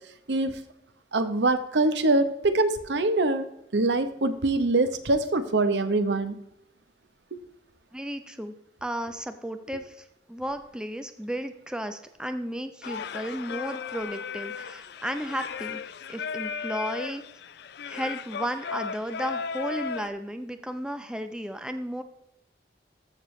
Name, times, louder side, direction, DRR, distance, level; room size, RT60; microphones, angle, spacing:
voice 1, 0.3-0.6 1.1-3.4 3.7-6.4 7.3-7.4, right 2 dB, 70° right, 10 dB, 0.8 m, -24 dB
voice 2, 7.9-8.5 8.8-15.8 16.1-17.2 17.8-22.0, equal, 5° right, 8 dB, 0.5 m, -34 dB
Singing, 12.8-20.1, left 6 dB, 65° left, 0.4 m, -36 dB
14.0 x 6.7 x 3.2 m, 0.80 s
head